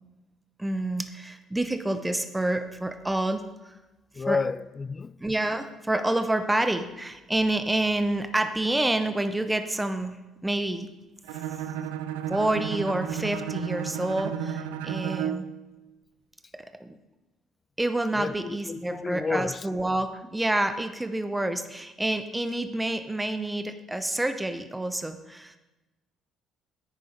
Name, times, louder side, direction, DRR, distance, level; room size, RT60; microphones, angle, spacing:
voice 1, 0.6-3.5 4.3-4.4 5.2-10.1 10.4-10.9 12.3-15.5 16.5-16.9 17.8-25.6, right 1 dB, 10° right, 0.9 m, -28 dB
voice 2, 4.1-5.2 18.2-19.7, left 4 dB, 35° left, 0.3 m, -30 dB
Bowed string instrument, 11.2-15.5, right 8 dB, 80° right, 0.6 m, -32 dB
9.9 x 9.4 x 5.2 m
hypercardioid pair, 55°, 0 cm